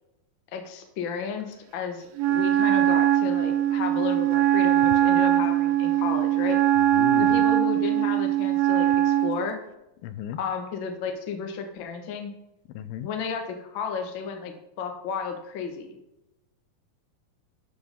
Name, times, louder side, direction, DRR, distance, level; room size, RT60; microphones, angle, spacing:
voice 1, 0.5-6.6 7.2-9.6 10.4-12.3 13.0-15.9, left 6 dB, 60° left, 4 dB, 1.3 m, -33 dB
Wind instrument woodwind instrument, 2.2-9.4, right 12 dB, 90° right, 2.7 m, -21 dB
voice 2, 6.8-7.5 10.0-10.4 12.8-13.1, left 10 dB, 90° left, 11 dB, 2.6 m, -35 dB
12.5 x 5.2 x 5.4 m, 0.88 s
omnidirectional pair, 4.2 m